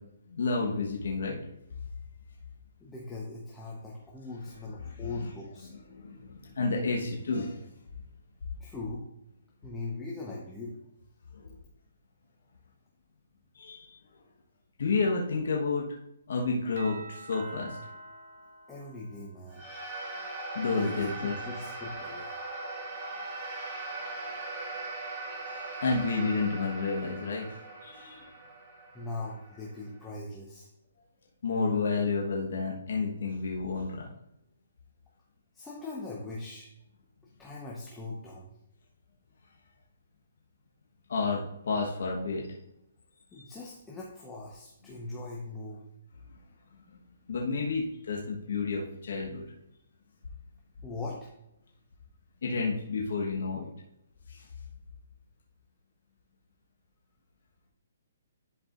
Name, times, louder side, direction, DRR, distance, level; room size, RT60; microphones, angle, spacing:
voice 1, 0.3-1.4 4.8-5.3 5.9-7.7 11.3-11.5 13.5-14.0 14.8-15.8 16.3-17.8 20.5-21.3 25.2-28.2 31.4-34.1 41.1-42.4 43.3-43.5 46.9-47.0 47.3-49.4 52.4-53.7 54.3-54.5, left 4 dB, 70° left, -2 dB, 1.3 m, -31 dB
voice 2, 2.8-5.7 8.6-9.0 9.6-10.7 18.7-19.6 20.8-22.3 25.2-25.5 25.7-25.8 28.9-30.7 35.5-36.7 37.4-38.5 43.3-45.8 50.8-51.3, left 3 dB, 10° left, -4 dB, 1.0 m, -40 dB
Doorbell, 16.8-19.6, right 2 dB, 60° right, 1.3 m, -47 dB
sound 1, 19.5-30.0, right 2 dB, 25° right, 2.0 m, -40 dB
11.0 x 4.8 x 2.6 m, 0.83 s
hypercardioid pair, 150°, 0 cm